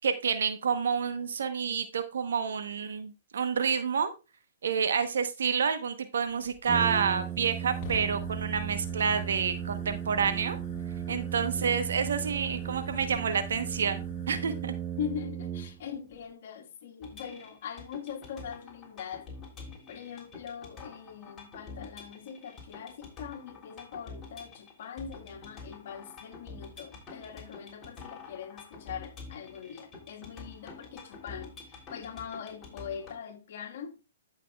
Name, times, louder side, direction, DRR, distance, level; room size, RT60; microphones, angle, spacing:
voice 1, 0.0-4.1 4.6-10.6 11.1-14.0 14.3-14.7, right 6 dB, 75° right, 0.9 m, -29 dB
Fire, 6.3-15.2, left 7 dB, 40° left, 1.6 m, -48 dB
Brass instrument, 6.7-16.1, right 10 dB, 15° right, 0.5 m, -36 dB
voice 2, 15.0-19.3 19.9-34.0, left 8 dB, 60° left, 1.5 m, -41 dB
sound 1, 17.0-33.2, left 4 dB, 20° left, 3.2 m, -48 dB
14.5 x 5.9 x 2.3 m
hypercardioid pair, 135°, 0 cm